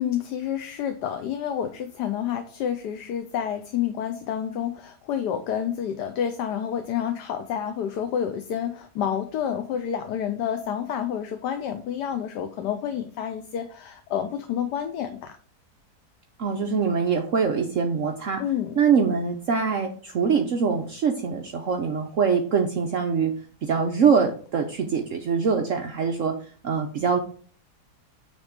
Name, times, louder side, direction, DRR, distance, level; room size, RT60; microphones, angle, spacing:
voice 1, 0.0-15.3 18.4-18.8, left 9 dB, 80° left, 7 dB, 1.3 m, -29 dB
voice 2, 16.4-18.4 18.8-23.3 23.6-26.4 26.6-27.2, right 6 dB, 60° right, 3 dB, 1.0 m, -23 dB
8.9 x 3.5 x 5.0 m, 0.43 s
omnidirectional pair, 1.8 m